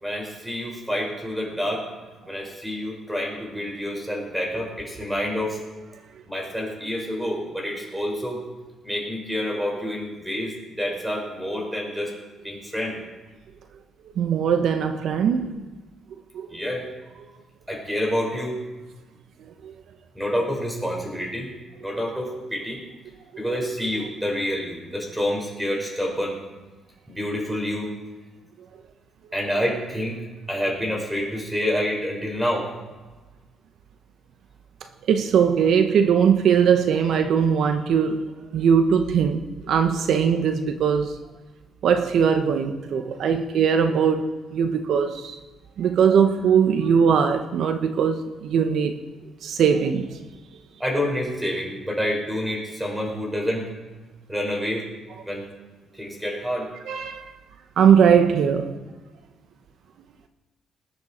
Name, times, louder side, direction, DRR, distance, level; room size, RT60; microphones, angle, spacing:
voice 1, 0.0-1.9 2.3-5.6 6.3-8.4 8.8-12.1 12.4-13.0 16.5-16.9 17.7-18.6 20.1-21.5 21.8-22.8 23.4-26.4 27.1-27.9 29.3-30.2 30.5-32.7 50.8-53.6 54.3-54.9 55.3-55.4 55.9-56.7, equal, 5° right, 4.9 m, -28 dB
voice 2, 14.2-15.6 16.3-16.5 19.6-19.7 35.1-38.2 38.5-41.2 41.8-45.4 45.8-48.9 49.4-50.2 56.9-57.3 57.8-58.8, right 7 dB, 70° right, 0.9 m, -20 dB
20.0 x 9.8 x 4.4 m
cardioid pair, 90°, 0 cm